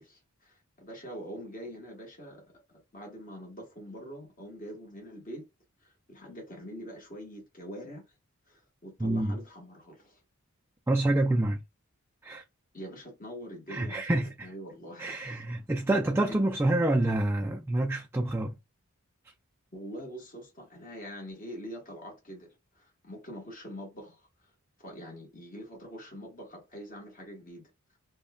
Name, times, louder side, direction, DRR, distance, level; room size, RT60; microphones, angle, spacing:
voice 1, 0.0-2.6 2.9-5.5 5.8-8.1 8.5-10.2 12.7-15.4 16.3-16.4 19.7-22.5 22.7-24.5 24.8-27.7, equal, 40° left, 1.2 m, -44 dB
voice 2, 9.0-9.4 10.9-11.6 12.2-12.4 13.7-14.5 15.0-18.5, right 1 dB, 10° right, 0.3 m, -27 dB
5.2 x 2.2 x 2.3 m
head